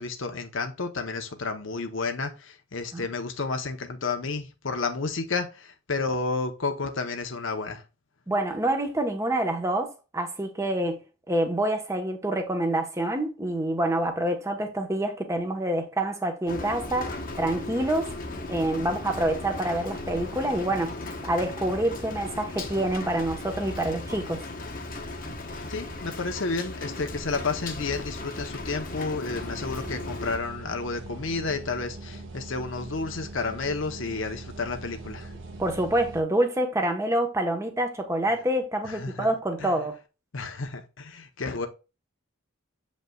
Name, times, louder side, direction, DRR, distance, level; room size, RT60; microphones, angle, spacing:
voice 1, 0.0-7.8 25.7-35.3 38.8-39.3 39.6-39.7 40.3-41.7, left 4 dB, 60° left, 0.9 m, -31 dB
voice 2, 8.3-18.2 18.5-21.0 21.2-24.4 35.6-39.9, right 1 dB, 15° right, 1.1 m, -27 dB
Rain, 16.5-30.4, left 2 dB, 40° left, 1.1 m, -36 dB
sound 1, 29.3-36.2, right 2 dB, 60° right, 1.4 m, -41 dB
7.6 x 5.3 x 2.3 m
head